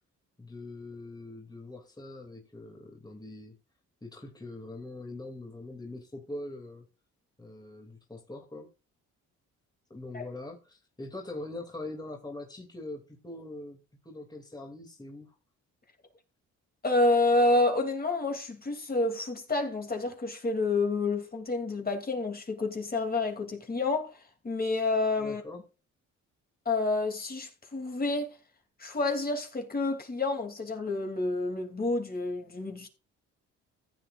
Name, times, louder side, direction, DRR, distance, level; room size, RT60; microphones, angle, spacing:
voice 1, 0.4-3.6 4.0-6.9 7.4-8.7 9.9-15.4 25.2-25.6, left 2 dB, 15° left, 2.7 m, -42 dB
voice 2, 16.8-25.4 26.6-28.4 28.8-32.9, left 2 dB, 30° left, 3.0 m, -29 dB
15.0 x 7.9 x 2.6 m
cardioid pair, 90°, 30 cm